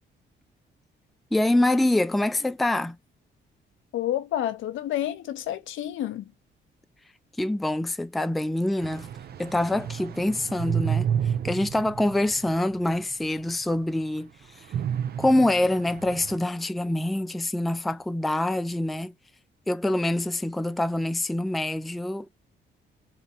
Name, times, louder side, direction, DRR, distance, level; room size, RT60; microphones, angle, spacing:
voice 1, 1.3-3.0 7.4-9.1 9.4-11.1 11.4-14.7 15.2-19.1 19.7-22.3, left 1 dB, ahead, 0.3 m, -25 dB
voice 2, 3.9-6.3, left 12 dB, 80° left, 0.7 m, -29 dB
sound 1, 8.8-13.1 13.5-13.6 14.7-16.4, right 8 dB, 50° right, 0.5 m, -30 dB
3.9 x 3.0 x 2.8 m
cardioid pair, 90°, 20 cm